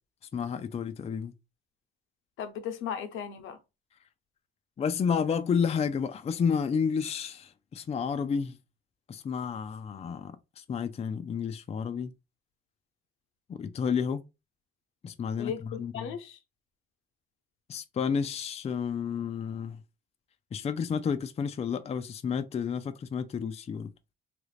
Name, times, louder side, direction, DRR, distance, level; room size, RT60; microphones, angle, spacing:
voice 1, 0.3-1.3 4.8-8.6 9.1-12.1 13.5-14.2 15.0-16.1 17.7-19.8 20.5-23.9, left 6 dB, 30° left, 0.4 m, -31 dB
voice 2, 2.4-3.6 15.4-16.4, left 8 dB, 85° left, 0.7 m, -36 dB
3.2 x 2.4 x 3.2 m
cardioid pair, 90°, 20 cm